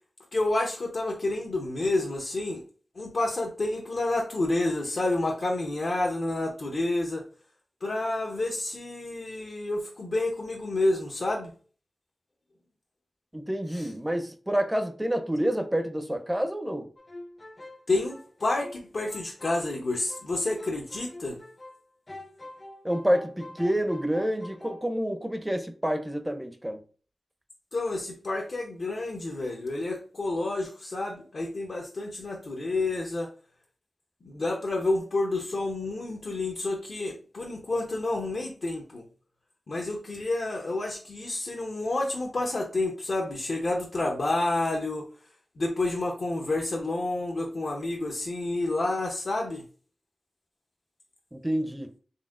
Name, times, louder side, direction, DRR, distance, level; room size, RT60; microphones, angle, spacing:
voice 1, 0.3-2.6 2.9-7.2 7.8-11.5 13.7-13.9 17.9-21.4 27.7-33.3 34.2-39.1 39.7-45.1 45.6-49.6, left 2 dB, 65° left, 0.8 m, -29 dB
voice 2, 13.3-16.9 22.8-26.8 51.3-51.9, equal, 10° right, 0.6 m, -28 dB
sound 1, 17.0-21.8 22.1-24.8, left 1 dB, 35° left, 0.6 m, -45 dB
4.1 x 3.5 x 2.5 m
cardioid pair, 55°, 0 cm